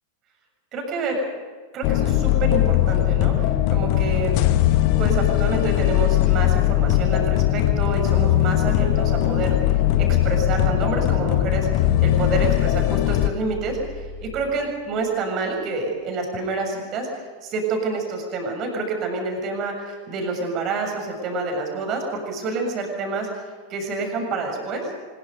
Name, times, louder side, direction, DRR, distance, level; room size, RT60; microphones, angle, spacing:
voice 1, 0.7-1.2 1.7-4.4 5.0-23.3 23.7-24.8, right 3 dB, 35° right, 2 dB, 7.0 m, -28 dB
sound 1, 1.8-13.3, left 14 dB, 45° left, 1.3 m, -20 dB
sound 2, 14.7-15.7, left 3 dB, 70° right, 7.6 m, -38 dB
25.0 x 22.0 x 5.5 m, 1.5 s
figure-of-eight pair, 90°, 0 cm